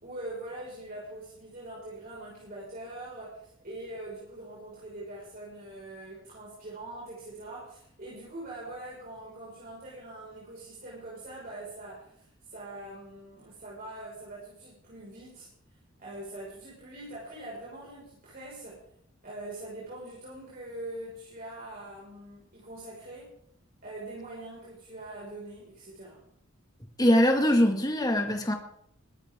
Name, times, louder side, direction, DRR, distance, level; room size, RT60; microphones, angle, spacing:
voice 1, 0.0-15.5 16.0-18.8 19.2-23.3 23.8-26.2, right 1 dB, 45° right, -6 dB, 5.9 m, -43 dB
voice 2, 27.0-28.5, equal, 20° left, 3 dB, 2.1 m, -22 dB
22.5 x 13.0 x 3.8 m, 0.71 s
head